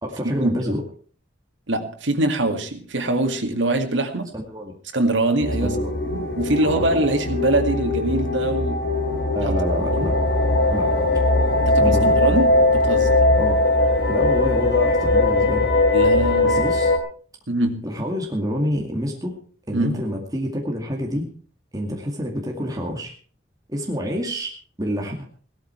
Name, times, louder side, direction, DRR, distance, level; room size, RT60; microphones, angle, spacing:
voice 1, 0.0-0.8 4.3-4.7 5.6-5.9 6.6-6.9 9.3-10.2 10.7-10.9 11.8-12.2 13.4-13.6 14.1-15.7 16.4-16.9 17.8-19.4 19.7-21.3 21.7-23.1 23.7-24.5 24.8-25.3, equal, 20° right, 0 dB, 2.2 m, -27 dB
voice 2, 1.7-4.3 4.9-5.8 6.1-8.8 9.4-9.6 9.9-10.1 11.6-13.2 15.9-16.6 17.5-17.9 19.7-20.0, right 2 dB, 85° right, 5 dB, 2.2 m, -23 dB
sound 1, 5.4-17.0, left 2 dB, 70° left, 2.9 m, -20 dB
17.5 x 13.0 x 4.5 m, 0.42 s
head